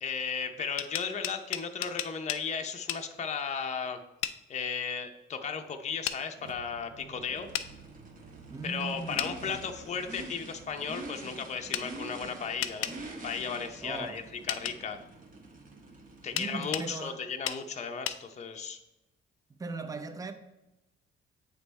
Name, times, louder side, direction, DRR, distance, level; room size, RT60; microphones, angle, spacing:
voice 1, 0.0-4.0 4.5-7.5 8.6-12.9 13.2-14.2 14.5-15.0 16.2-18.8, left 6 dB, 35° left, 0.6 m, -35 dB
sound 1, 0.6-2.4 2.9-3.0 4.2-4.4 6.1-6.2 7.5-7.7 9.2-9.3 11.7-11.9 12.6-13.0 14.5-14.8 16.4-16.9 17.5-17.6 18.1-18.2, left 12 dB, 90° left, 0.4 m, -33 dB
sound 2, 6.3-11.7, right 6 dB, 70° right, 0.6 m, -54 dB
Race car auto racing / Idling / Accelerating revving vroom, 7.3-16.7, right 2 dB, 45° right, 1.3 m, -46 dB
voice 2, 8.5-9.7 13.8-14.2 16.3-17.3 19.5-20.3, right 3 dB, 15° right, 0.6 m, -39 dB
8.0 x 3.4 x 4.1 m
cardioid pair, 90°, 20 cm